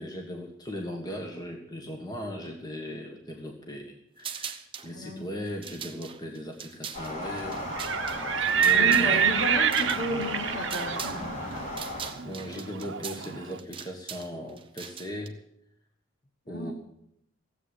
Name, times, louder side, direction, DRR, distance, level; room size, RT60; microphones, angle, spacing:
voice 1, 0.0-7.7 8.0-8.2 8.6-9.3 12.2-15.4 16.5-16.7, equal, 20° left, 1 dB, 1.6 m, -38 dB
sound 1, 4.2-4.9 5.5-11.2 11.5-15.3, right 7 dB, 25° right, 1.1 m, -41 dB
voice 2, 4.9-5.2 8.4-11.4 16.5-16.7, left 1 dB, 55° left, 1 dB, 3.7 m, -33 dB
sound 2, 6.9-12.1, left 1 dB, 35° left, 3.8 m, -36 dB
Livestock farm animals working animals, 7.6-13.4, right 7 dB, 65° right, 1.0 m, -27 dB
16.5 x 8.1 x 9.9 m, 0.75 s
head